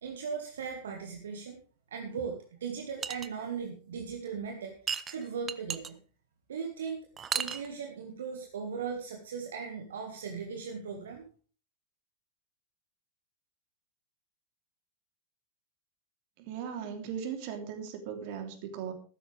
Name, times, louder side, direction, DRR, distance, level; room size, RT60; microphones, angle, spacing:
voice 1, 0.0-1.6 1.9-6.0 6.5-7.1 7.3-11.3, right 6 dB, 65° right, 4 dB, 1.8 m, -38 dB
sound 1, 3.0-3.3 4.9-5.9 7.2-7.7, right 7 dB, 20° right, 0.9 m, -33 dB
voice 2, 16.4-18.9, right 7 dB, 45° right, 6 dB, 3.2 m, -38 dB
15.0 x 13.0 x 3.4 m, 0.40 s
figure-of-eight pair, 90°, 0 cm